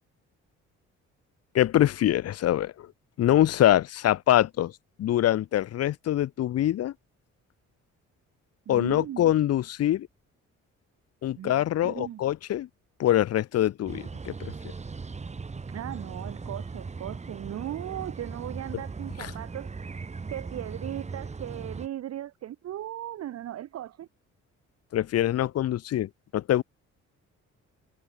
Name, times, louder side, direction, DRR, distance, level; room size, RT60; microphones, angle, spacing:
voice 1, 1.5-2.9 3.2-4.7 5.0-6.9 8.7-10.1 11.2-12.7 13.0-14.5 19.2-19.3 24.9-26.6, left 12 dB, 55° left, 0.6 m, -24 dB
voice 2, 8.7-9.2 11.4-11.5 11.8-12.2 15.7-19.7 20.3-24.1, right 12 dB, 55° right, 0.8 m, -37 dB
sound 1, 13.9-21.9, right 4 dB, 20° right, 1.1 m, -38 dB
cardioid pair, 90°, 30 cm